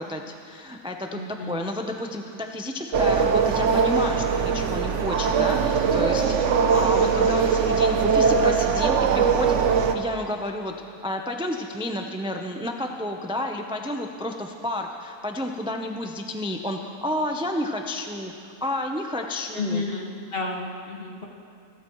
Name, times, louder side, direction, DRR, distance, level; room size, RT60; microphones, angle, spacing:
voice 1, 0.0-18.3 18.6-19.8, left 1 dB, 5° right, 3 dB, 0.5 m, -31 dB
voice 2, 1.1-1.7 19.5-21.2, left 3 dB, 45° left, -1 dB, 1.9 m, -31 dB
sound 1, 2.9-9.9, right 6 dB, 65° right, 1.0 m, -21 dB
28.0 x 13.5 x 3.1 m, 2.4 s
omnidirectional pair, 1.4 m